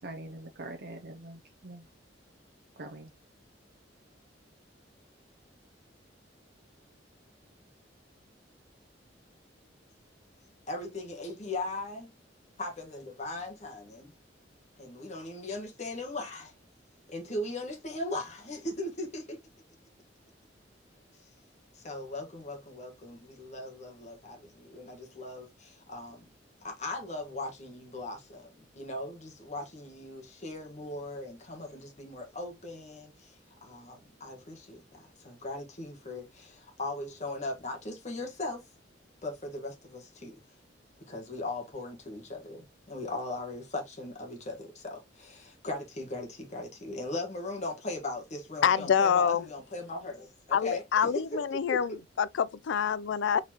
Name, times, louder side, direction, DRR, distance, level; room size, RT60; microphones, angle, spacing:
voice 1, 0.0-1.9 2.8-3.1, right 2 dB, 55° right, 0.7 m, -43 dB
voice 2, 10.7-12.1 12.6-14.1 14.8-16.5 17.1-19.4 21.7-26.3 26.6-33.3 33.6-38.7 39.2-40.4 41.0-51.4 51.7-51.8, left 2 dB, 40° left, 1.5 m, -39 dB
voice 3, 48.6-49.5 50.5-53.4, left 7 dB, 75° left, 0.4 m, -26 dB
4.2 x 3.9 x 2.9 m
head